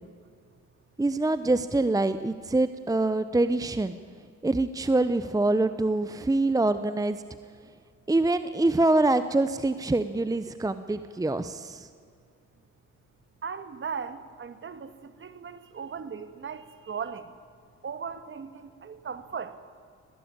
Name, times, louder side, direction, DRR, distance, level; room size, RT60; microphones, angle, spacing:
voice 1, 1.0-4.0 4.4-7.2 8.1-11.9, right 2 dB, 10° right, 12 dB, 0.8 m, -25 dB
voice 2, 13.4-17.3 17.8-19.6, right 6 dB, 40° right, 12 dB, 1.7 m, -38 dB
20.0 x 17.5 x 8.8 m, 2.3 s
cardioid pair, 90°, 30 cm